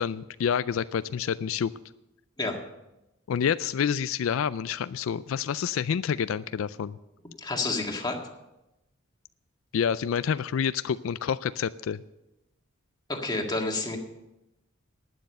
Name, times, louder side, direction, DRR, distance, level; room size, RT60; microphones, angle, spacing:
voice 1, 0.0-1.7 3.3-7.0 9.7-12.0, left 7 dB, 90° left, 15 dB, 0.4 m, -28 dB
voice 2, 7.4-8.2 13.1-14.0, left 2 dB, 20° left, 2 dB, 1.8 m, -29 dB
11.5 x 9.4 x 6.6 m, 0.94 s
head